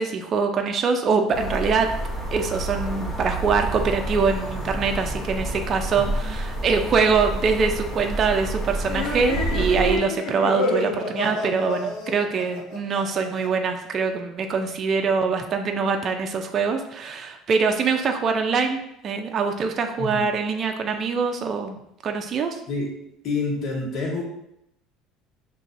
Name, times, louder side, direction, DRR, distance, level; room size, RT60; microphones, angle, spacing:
voice 1, 0.0-1.9 2.3-22.6, right 5 dB, 40° right, 4 dB, 0.4 m, -24 dB
sound 1, 1.3-10.0, right 2 dB, 25° left, 0.8 m, -29 dB
voice 2, 5.9-6.3 20.0-20.3 22.7-22.9 23.2-24.2, left 3 dB, 50° left, -3 dB, 1.3 m, -28 dB
sound 2, 8.9-13.5, left 2 dB, 75° left, 0.8 m, -29 dB
5.4 x 3.0 x 2.6 m, 0.79 s
supercardioid pair, 115°, 0 cm